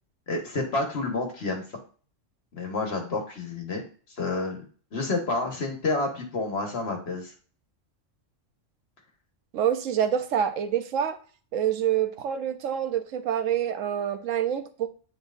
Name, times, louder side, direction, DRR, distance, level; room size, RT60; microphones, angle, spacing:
voice 1, 0.3-1.8 2.5-3.8 4.2-4.6 4.9-7.3, left 3 dB, 55° left, 1 dB, 1.6 m, -29 dB
voice 2, 9.5-11.2 11.5-14.9, right 9 dB, 85° right, 8 dB, 1.1 m, -26 dB
9.1 x 4.4 x 2.6 m, 0.41 s
omnidirectional pair, 1.3 m